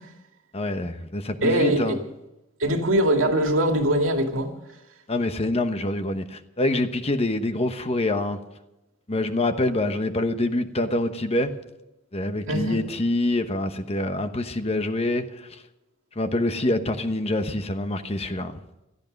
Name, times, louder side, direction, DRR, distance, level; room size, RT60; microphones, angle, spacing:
voice 1, 0.5-2.0 5.1-8.4 9.1-11.6 12.1-15.6 16.2-18.6, left 1 dB, 30° left, 1.1 m, -26 dB
voice 2, 1.4-2.0 2.6-4.5 12.5-12.8, right 1 dB, 75° right, 2.4 m, -22 dB
17.0 x 13.5 x 5.3 m
head